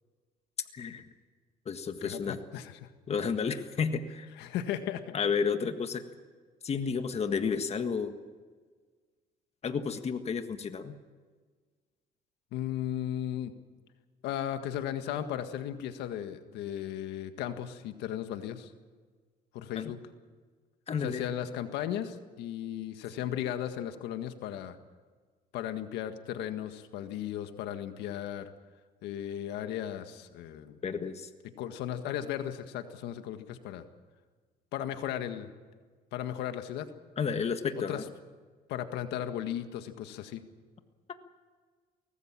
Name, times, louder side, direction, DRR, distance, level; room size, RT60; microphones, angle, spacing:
voice 1, 0.7-1.1 1.6-2.4 3.1-4.3 5.1-6.0 6.6-8.1 9.6-10.9 19.7-19.9 20.9-21.3 30.8-31.3 37.2-38.0, left 6 dB, 40° left, 8 dB, 1.7 m, -31 dB
voice 2, 2.0-2.9 4.4-5.1 12.5-13.5 14.2-18.7 19.5-20.0 21.0-24.8 25.5-28.5 29.0-30.8 31.6-33.8 34.7-35.5 36.1-36.9 37.9-38.0 38.7-40.4, left 10 dB, 85° left, 8 dB, 1.7 m, -36 dB
24.0 x 19.0 x 7.5 m, 1.5 s
cardioid pair, 110°, 17 cm